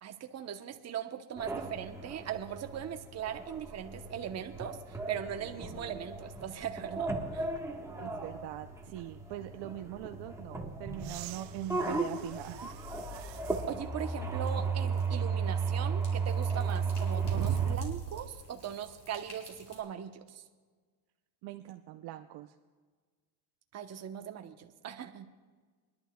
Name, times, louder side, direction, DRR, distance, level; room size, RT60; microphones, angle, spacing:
voice 1, 0.0-7.5 13.7-20.4 23.7-25.3, right 9 dB, 30° right, 6 dB, 0.9 m, -40 dB
sound 1, 1.4-17.8, right 4 dB, 5° right, 1.3 m, -35 dB
voice 2, 8.0-12.7 13.1-13.2 21.4-22.5, right 14 dB, 55° right, 6 dB, 0.6 m, -42 dB
sound 2, 11.0-13.7 14.4-14.5 17.2-18.4 20.3-20.4, right 11 dB, 85° right, 0.9 m, -41 dB
sound 3, 13.4-19.8, left 1 dB, 35° left, 4.5 m, -55 dB
24.5 x 11.5 x 2.3 m, 1.5 s
supercardioid pair, 115°, 50 cm